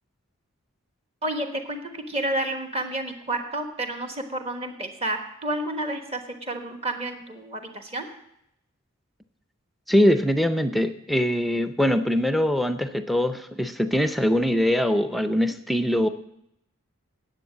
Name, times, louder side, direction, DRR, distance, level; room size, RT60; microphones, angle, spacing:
voice 1, 1.2-8.1, right 1 dB, 25° right, 5 dB, 1.2 m, -30 dB
voice 2, 9.9-16.1, equal, ahead, 9 dB, 0.4 m, -22 dB
9.7 x 8.0 x 7.4 m, 0.79 s
head